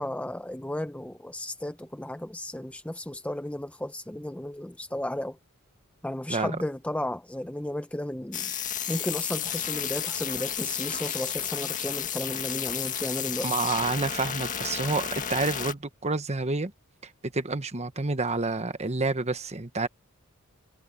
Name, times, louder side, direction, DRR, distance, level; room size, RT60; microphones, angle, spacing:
voice 1, 0.0-5.4 6.0-8.5 8.9-13.5, left 1 dB, 5° left, 0.6 m, -34 dB
sound 1, 8.3-15.7, left 8 dB, 35° left, 2.0 m, -32 dB
voice 2, 13.4-16.7 17.0-19.9, right 3 dB, 30° right, 1.2 m, -29 dB
head